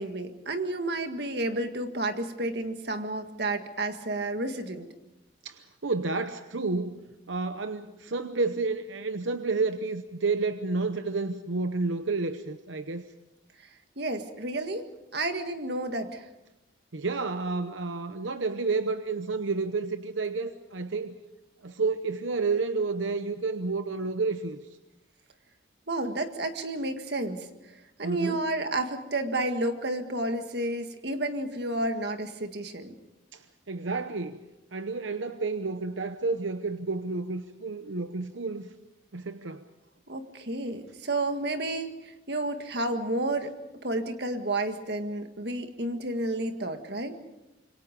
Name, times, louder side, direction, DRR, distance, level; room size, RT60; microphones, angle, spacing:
voice 1, 0.0-4.9 14.0-16.3 25.9-27.5 28.0-32.9 40.1-43.5 43.8-47.2, right 2 dB, 55° right, 7 dB, 1.8 m, -31 dB
voice 2, 5.4-7.0 7.3-13.1 16.9-21.1 21.6-24.6 28.0-28.4 33.3-34.4 34.7-38.7 39.1-39.6, right 3 dB, 75° right, 9 dB, 0.9 m, -30 dB
26.5 x 23.5 x 5.2 m, 0.98 s
head